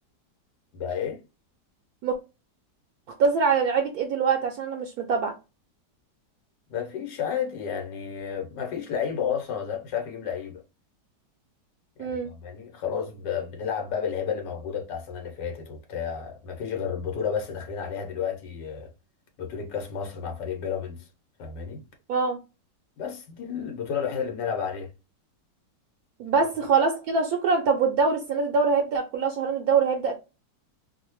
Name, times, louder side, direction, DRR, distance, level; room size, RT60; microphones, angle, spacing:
voice 1, 0.7-1.2 6.7-10.6 12.0-18.9 19.4-21.1 21.4-21.8 23.0-24.9 26.3-26.5, left 7 dB, 80° left, 1.6 m, -31 dB
voice 2, 3.2-5.3 12.0-12.3 22.1-22.4 26.2-30.2, right 5 dB, 70° right, 1.0 m, -24 dB
3.3 x 2.1 x 3.0 m
omnidirectional pair, 1.9 m